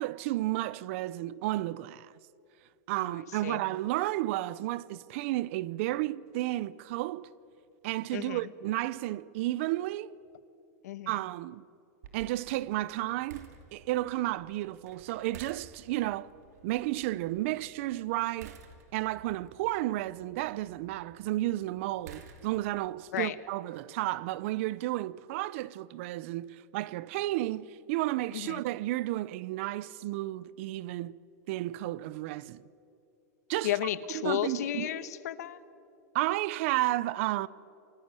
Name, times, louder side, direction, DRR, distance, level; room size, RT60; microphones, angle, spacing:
voice 1, 0.0-2.1 2.9-7.3 7.8-10.1 11.1-11.6 12.1-16.3 16.6-18.6 18.9-31.2 31.5-32.6 33.5-33.8 34.1-34.9 36.1-37.5, right 16 dB, 50° right, 0.6 m, -32 dB
sound 1, 12.0-22.9, right 7 dB, 70° right, 3.0 m, -54 dB
voice 2, 33.6-35.6, left 12 dB, 75° left, 1.2 m, -33 dB
28.0 x 19.5 x 9.0 m
supercardioid pair, 160°, 9 cm